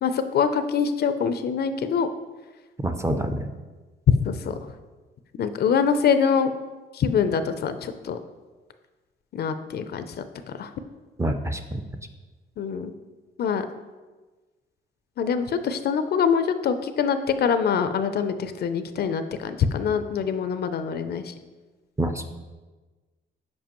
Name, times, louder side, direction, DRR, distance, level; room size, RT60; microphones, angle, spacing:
voice 1, 0.0-2.1 4.2-4.5 5.4-6.5 6.9-8.2 9.3-10.1 10.6-10.7 12.6-12.9 13.4-13.6 15.2-21.3, left 6 dB, 55° left, 10 dB, 0.5 m, -24 dB
voice 2, 2.8-3.4 11.2-11.8 22.0-22.3, right 1 dB, 15° right, 6 dB, 0.5 m, -26 dB
7.3 x 4.9 x 3.0 m, 1.3 s
cardioid pair, 90°, 20 cm